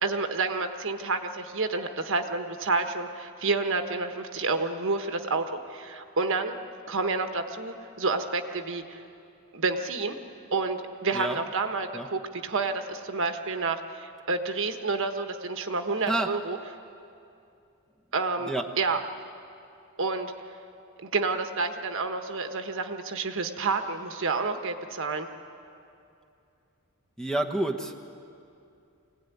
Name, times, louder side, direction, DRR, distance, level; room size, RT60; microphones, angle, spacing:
voice 1, 0.0-6.5 6.9-9.0 9.5-10.2 10.5-16.6 18.1-19.0 20.0-20.3 21.0-25.3, right 3 dB, 60° right, 6 dB, 1.3 m, -29 dB
voice 2, 27.2-28.0, right 2 dB, 5° left, 4 dB, 1.0 m, -28 dB
24.0 x 17.5 x 9.4 m, 2.6 s
head